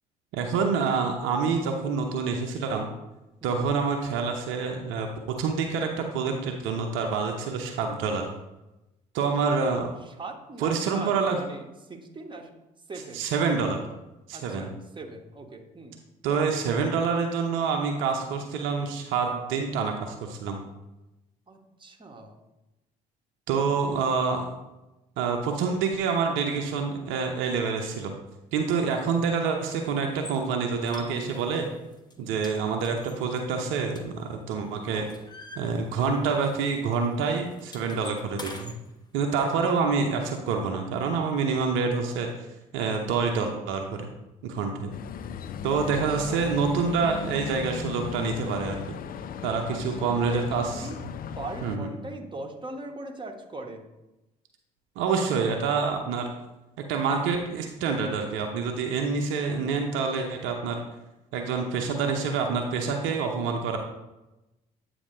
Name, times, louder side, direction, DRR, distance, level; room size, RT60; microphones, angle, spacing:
voice 1, 0.3-2.9 3.4-5.1 5.4-8.2 9.1-9.9 10.6-11.4 13.1-13.8 14.3-14.7 16.2-20.6 23.5-24.5 25.2-28.1 28.5-31.7 32.3-35.1 35.6-38.7 39.1-42.3 42.7-44.1 44.4-44.9 45.6-49.0 49.4-50.9 51.6-51.9 55.0-56.3 56.9-60.8 61.3-63.8, right 5 dB, 70° right, 3 dB, 0.8 m, -27 dB
voice 2, 10.2-11.6 11.9-12.5 12.9-13.2 14.3-15.9 21.5-22.4 32.2-32.4 46.1-46.5 49.7-51.0 51.4-53.9, right 2 dB, 25° right, 2 dB, 1.2 m, -40 dB
sound 1, 30.1-30.4 30.9-31.6 31.9-32.1 32.4-34.5 34.8-36.3 36.5-36.7 37.0-38.8, left 2 dB, 20° left, 1.1 m, -44 dB
sound 2, 44.9-51.8, left 7 dB, 45° left, 0.4 m, -36 dB
8.3 x 2.8 x 5.4 m, 0.98 s
hypercardioid pair, 55°, 21 cm